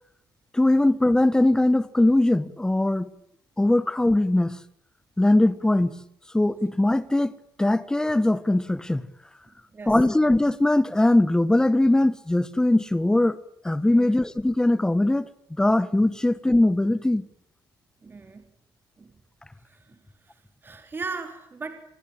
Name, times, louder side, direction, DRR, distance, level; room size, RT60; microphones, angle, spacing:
voice 1, 0.5-3.1 3.6-4.6 5.2-6.0 6.3-7.3 7.6-9.0 9.9-13.4 13.6-15.3 15.6-17.2, left 1 dB, 10° left, 1.4 m, -21 dB
voice 2, 9.5-10.0 13.9-14.1 18.0-18.4 19.0-19.1 19.7-21.8, right 4 dB, 25° right, 4.2 m, -39 dB
28.5 x 22.0 x 8.8 m
cardioid pair, 145°, 8 cm